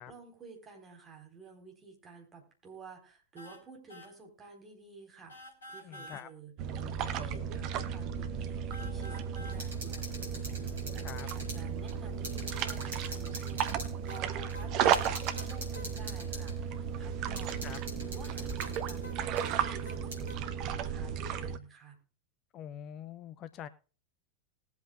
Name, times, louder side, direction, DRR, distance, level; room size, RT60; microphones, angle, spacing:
voice 1, 0.0-5.3 5.7-6.5 7.0-17.7 18.0-20.1 20.6-22.0, right 4 dB, 20° right, 2 dB, 4.3 m, -51 dB
sound 1, 3.4-3.6 3.9-4.1 5.3-6.3 8.7-9.6 14.1-15.9 18.6-20.4, left 1 dB, 70° left, 2.5 m, -49 dB
voice 2, 5.8-6.3 11.0-11.3 17.3-17.8 22.5-23.7, left 10 dB, 35° left, 12 dB, 0.7 m, -45 dB
sound 2, 6.6-21.6, right 8 dB, 40° right, 1.0 m, -34 dB
sound 3, 9.5-11.6 11.9-12.0 12.2-13.9 14.5-14.6 14.9-16.5 17.4-19.0 19.4-19.5 20.1-20.2, right 1 dB, 70° right, 5.0 m, -44 dB
20.0 x 8.3 x 2.4 m, 0.36 s
figure-of-eight pair, 90°, 0 cm